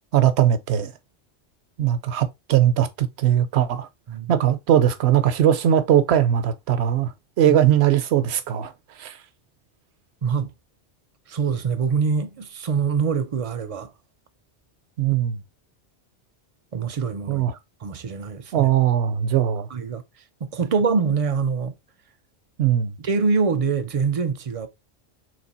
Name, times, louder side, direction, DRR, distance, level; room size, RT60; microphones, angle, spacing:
voice 1, 0.1-0.9 1.8-3.9 4.3-8.7 9.0-9.2 15.0-15.4 17.3-17.5 18.5-19.7 22.6-23.0, right 10 dB, 70° right, 0.9 m, -20 dB
voice 2, 10.2-10.5 11.3-13.9 16.7-17.5 17.8-18.7 19.3-19.4 19.7-20.0 20.4-21.7 23.0-24.7, right 5 dB, 45° right, 0.5 m, -24 dB
3.3 x 3.1 x 4.1 m
omnidirectional pair, 1.2 m